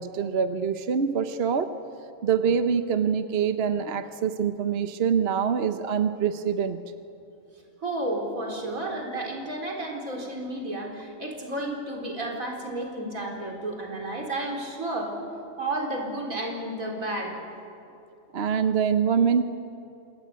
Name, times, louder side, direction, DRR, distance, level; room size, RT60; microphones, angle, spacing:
voice 1, 0.0-1.7 2.2-6.8 18.3-19.4, right 7 dB, 50° right, 9 dB, 1.1 m, -25 dB
voice 2, 7.8-15.2 15.6-17.4, right 1 dB, 85° right, 1 dB, 4.7 m, -32 dB
27.0 x 21.5 x 9.6 m, 2.8 s
omnidirectional pair, 1.4 m